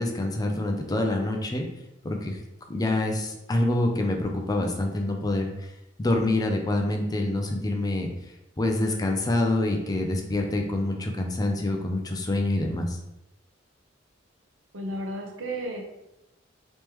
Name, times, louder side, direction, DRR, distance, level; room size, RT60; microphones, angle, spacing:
voice 1, 0.0-1.7 2.0-2.4 2.7-5.5 6.0-8.1 8.6-13.0, left 1 dB, 20° left, 2 dB, 0.4 m, -26 dB
voice 2, 14.7-15.8, right 1 dB, 90° right, 2 dB, 0.7 m, -33 dB
3.5 x 3.1 x 3.0 m, 0.89 s
head